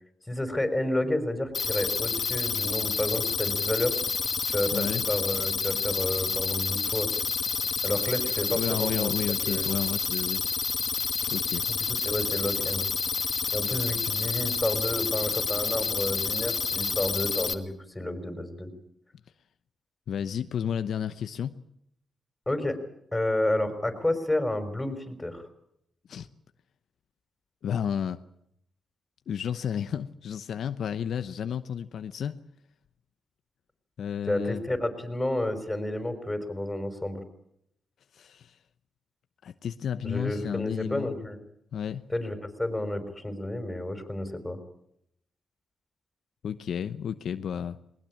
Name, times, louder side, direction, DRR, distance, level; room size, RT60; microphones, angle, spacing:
voice 1, 0.3-3.9 4.5-7.1 7.8-9.1 9.4-9.8 11.7-12.9 13.5-18.7 22.5-22.8 23.1-25.5 34.3-37.2 40.0-41.4 42.1-44.6, left 1 dB, 10° left, 7 dB, 5.4 m, -30 dB
sound 1, 1.5-17.5, left 5 dB, 45° left, 2.0 m, -29 dB
voice 2, 4.7-5.0 8.5-10.4 11.3-11.7 20.1-21.6 26.1-26.3 27.6-28.2 29.3-32.4 34.0-34.6 38.1-38.6 39.4-41.1 41.7-42.0 46.4-47.8, left 8 dB, 70° left, 10 dB, 0.9 m, -32 dB
21.0 x 20.0 x 8.8 m, 0.76 s
cardioid pair, 80°, 0 cm